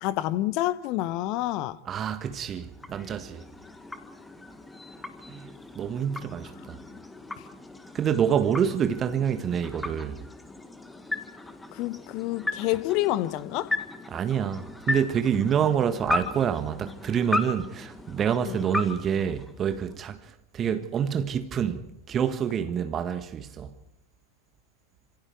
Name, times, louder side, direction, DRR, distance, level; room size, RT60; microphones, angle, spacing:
voice 1, 0.0-1.8 11.7-13.7 18.4-18.6, left 16 dB, 40° left, 1.0 m, -28 dB
voice 2, 1.9-3.4 5.3-6.8 7.9-10.2 14.1-23.8, right 8 dB, 25° right, 1.8 m, -27 dB
sound 1, 2.3-20.0, left 2 dB, 10° left, 1.8 m, -36 dB
27.0 x 26.5 x 4.7 m
figure-of-eight pair, 90°, 0 cm